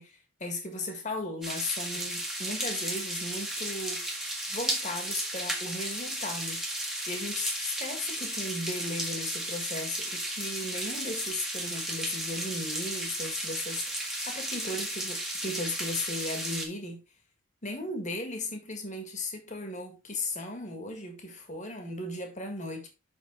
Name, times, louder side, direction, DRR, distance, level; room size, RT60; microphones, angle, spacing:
voice 1, 0.0-17.0 17.6-22.9, left 2 dB, 35° left, 1.8 m, -36 dB
sound 1, 1.4-16.7, right 1 dB, ahead, 1.4 m, -34 dB
6.1 x 6.1 x 3.9 m
head